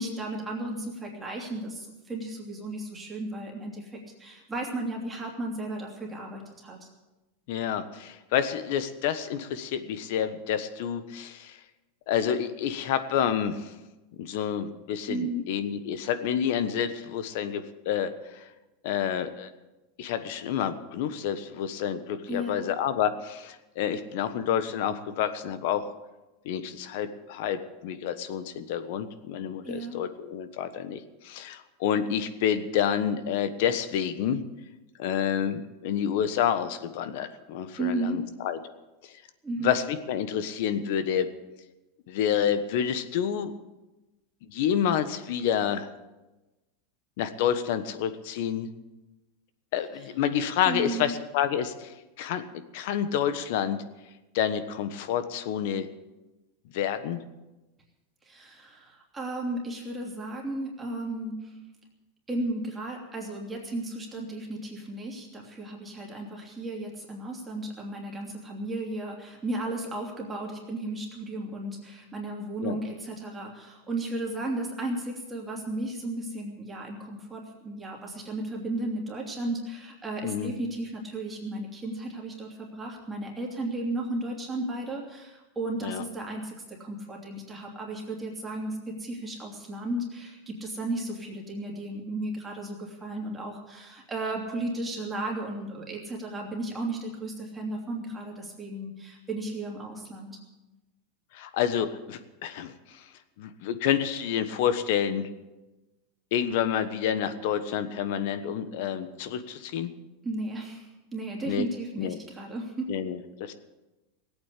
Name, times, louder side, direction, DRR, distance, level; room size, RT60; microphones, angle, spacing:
voice 1, 0.0-6.9 15.1-15.5 22.3-22.6 29.6-30.0 37.8-38.2 39.4-39.7 50.6-51.1 58.2-61.5 62.3-100.4 110.2-112.9, right 2 dB, 15° right, -2 dB, 2.9 m, -34 dB
voice 2, 7.5-11.6 12.1-13.7 14.2-18.5 18.8-19.5 20.0-25.9 26.4-34.4 35.0-38.6 39.0-39.2 39.6-41.3 42.1-43.5 44.5-45.9 47.2-48.7 49.7-53.8 54.3-55.9 56.7-57.2 72.6-72.8 80.2-80.5 85.8-86.0 101.3-103.0 103.4-105.3 106.3-109.9 111.5-111.6 112.0-112.2 112.9-113.5, left 9 dB, 60° left, 11 dB, 1.3 m, -29 dB
17.5 x 8.8 x 8.4 m, 1.1 s
supercardioid pair, 145°, 0 cm